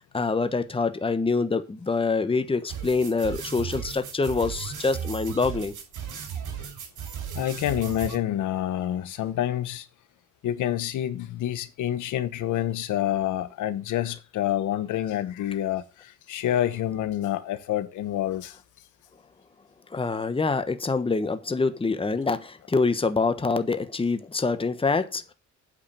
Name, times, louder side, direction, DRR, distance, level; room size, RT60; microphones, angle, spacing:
voice 1, 0.0-5.7 19.9-25.3, left 4 dB, 20° left, 1.1 m, -25 dB
sound 1, 2.7-8.2, right 8 dB, 85° right, 5.1 m, -36 dB
voice 2, 7.3-9.9 10.4-18.6, left 12 dB, 80° left, 1.1 m, -28 dB
8.8 x 5.1 x 6.8 m
cardioid pair, 90°, 30 cm